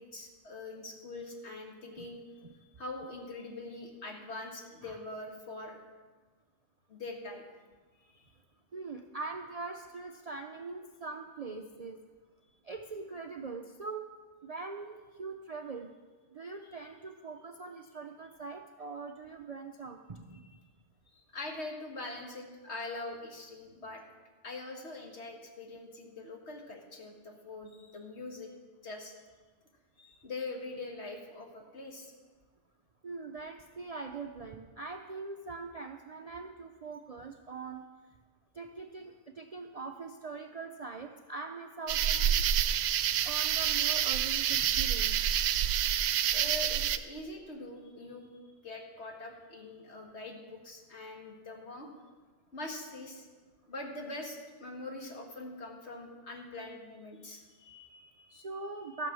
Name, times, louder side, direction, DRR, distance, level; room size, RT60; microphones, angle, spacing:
voice 1, 0.0-2.2 2.8-5.8 6.9-7.4 8.1-8.2 21.1-24.0 24.4-28.5 28.8-29.1 30.0-32.1 46.3-48.3 48.6-51.9 52.5-53.3 53.7-58.5, left 2 dB, 65° left, 2 dB, 2.0 m, -43 dB
voice 2, 8.7-12.0 12.6-14.1 14.4-15.9 16.3-20.5 33.0-37.8 38.5-42.5 43.2-45.3 58.3-59.1, right 4 dB, 45° right, 4 dB, 0.5 m, -42 dB
sound 1, 41.9-47.0, right 10 dB, 80° right, 0.9 m, -28 dB
14.0 x 6.9 x 6.1 m, 1.4 s
omnidirectional pair, 1.3 m